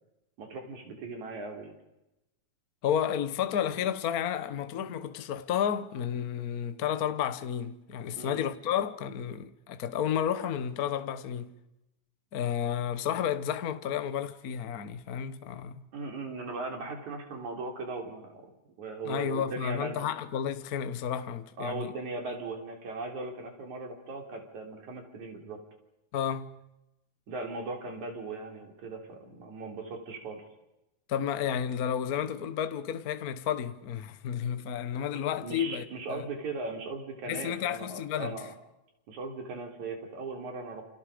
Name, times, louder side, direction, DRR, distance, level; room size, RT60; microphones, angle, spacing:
voice 1, 0.4-1.8 8.2-8.4 15.9-18.5 18.8-20.0 21.6-25.6 27.3-30.4 35.4-38.5 39.1-40.8, right 3 dB, 70° right, 5.1 m, -38 dB
voice 2, 2.8-11.6 12.3-15.9 19.0-21.9 26.1-26.6 31.1-36.3 37.3-38.3, left 9 dB, 80° left, 0.8 m, -31 dB
29.0 x 28.5 x 5.2 m
omnidirectional pair, 3.5 m